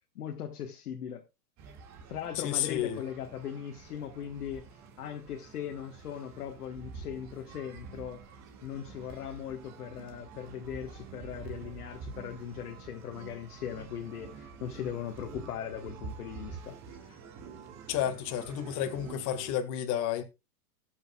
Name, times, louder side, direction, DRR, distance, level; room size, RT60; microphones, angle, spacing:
voice 1, 0.1-1.2 2.1-4.6 5.0-8.2 8.6-16.8 17.1-17.2, left 9 dB, 75° left, 1.4 m, -39 dB
sound 1, 1.6-19.5, right 5 dB, 40° right, 1.9 m, -47 dB
voice 2, 2.4-3.0 17.9-20.2, left 11 dB, 40° left, 1.8 m, -31 dB
19.5 x 6.6 x 2.3 m
hypercardioid pair, 110°, 44 cm